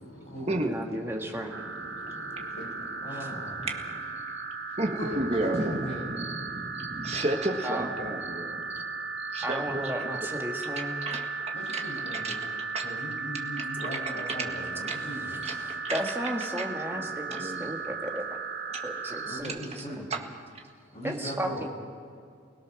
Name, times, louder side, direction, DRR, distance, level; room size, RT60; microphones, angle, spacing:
voice 1, 0.0-4.0, left 1 dB, 85° left, -1 dB, 5.6 m, -48 dB
voice 2, 0.6-1.6 7.6-7.9 9.4-11.0 15.6-18.3 18.8-19.9 21.0-21.6, right 1 dB, 10° right, 1 dB, 1.6 m, -34 dB
sound 1, 1.5-19.4, right 4 dB, 60° right, 2.1 m, -36 dB
voice 3, 3.0-3.7 5.0-6.1 11.5-12.5 12.8-15.5 19.2-20.1 20.9-21.7, equal, 30° left, -3 dB, 6.9 m, -38 dB
voice 4, 4.8-5.8 6.1-8.8 9.2-9.9 11.0-11.3 11.7-11.8 12.1-12.4 12.7-12.8 13.8-13.9 14.8-15.0 15.4-15.5 15.8-16.0 16.9-17.1 17.3-17.7 18.7-18.8 20.1-20.2, right 1 dB, 30° right, 2 dB, 1.7 m, -32 dB
29.0 x 17.5 x 6.2 m, 2.4 s
head